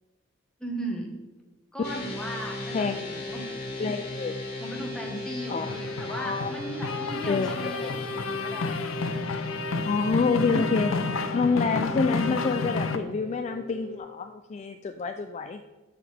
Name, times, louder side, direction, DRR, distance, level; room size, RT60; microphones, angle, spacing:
voice 1, 0.6-1.1 1.7-3.4 3.8-3.9 4.6-8.7, right 1 dB, 5° left, -1 dB, 1.4 m, -37 dB
sound 1, 1.8-14.0, left 2 dB, 50° left, 1.9 m, -38 dB
voice 2, 2.7-3.1 3.8-4.4 5.5-5.7 6.1-6.5 7.3-7.9 9.8-10.9 11.3-15.6, left 4 dB, 35° left, 7 dB, 0.3 m, -27 dB
sound 2, 5.6-13.0, left 3 dB, 80° left, 0.6 m, -31 dB
13.0 x 4.9 x 3.4 m, 1.2 s
head